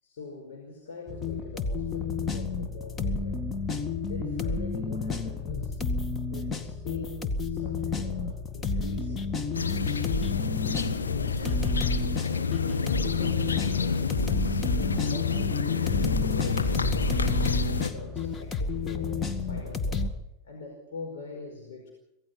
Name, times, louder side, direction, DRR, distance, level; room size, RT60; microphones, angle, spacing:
voice 1, 0.0-3.5 3.8-5.8 6.3-9.3 10.8-20.1 20.4-21.9, left 3 dB, 60° left, 2 dB, 5.0 m, -43 dB
sound 1, 1.1-20.1, left 4 dB, 20° left, 2.1 m, -30 dB
sound 2, 9.5-17.9, left 5 dB, 75° left, 1.6 m, -29 dB
26.0 x 17.0 x 5.7 m, 0.88 s
figure-of-eight pair, 90°, 0 cm